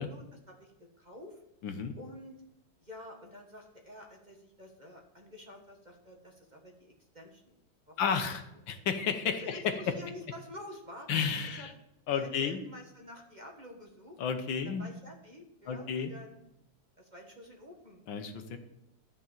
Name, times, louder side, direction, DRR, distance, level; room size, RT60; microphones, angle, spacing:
voice 1, 0.0-1.4 2.0-2.4 2.8-7.6 7.9-8.0 9.4-11.1 11.5-11.7 12.1-14.2 14.6-16.4 17.0-18.0, left 1 dB, 25° right, 1 dB, 1.3 m, -49 dB
voice 2, 1.6-1.9 8.0-9.6 11.1-11.7 12.1-12.6 14.2-14.9 15.7-16.1 18.1-18.6, left 6 dB, 75° left, 7 dB, 1.7 m, -32 dB
13.0 x 5.3 x 7.4 m, 0.85 s
omnidirectional pair, 2.1 m